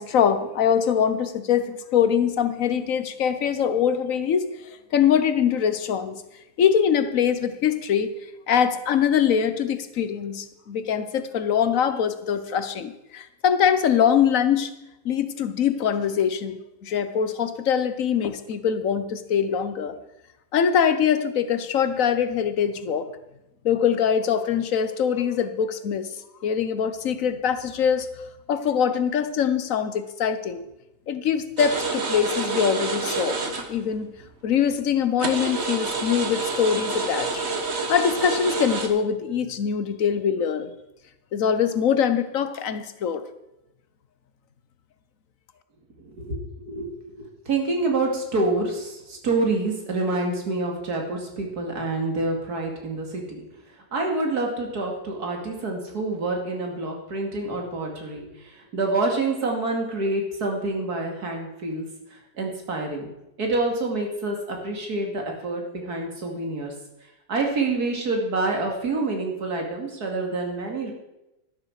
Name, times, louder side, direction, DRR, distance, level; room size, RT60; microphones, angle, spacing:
voice 1, 0.0-4.5 4.9-6.2 6.6-8.1 8.5-14.7 15.0-20.0 20.5-23.1 23.6-26.1 26.4-28.1 28.5-30.7 31.1-33.4 33.7-34.1 34.4-37.4 37.9-40.7 41.3-43.2, left 8 dB, 60° left, 11 dB, 1.3 m, -23 dB
sound 1, 31.6-33.9 34.2-34.3 34.8-34.9 35.2-38.9, right 3 dB, 45° right, 1.4 m, -28 dB
voice 2, 46.0-46.4 46.7-46.9 47.2-53.4 53.9-61.9 62.4-63.1 63.4-66.7 67.3-70.9, right 2 dB, 85° right, 1 dB, 2.9 m, -27 dB
12.5 x 11.5 x 4.8 m, 0.91 s
omnidirectional pair, 1.6 m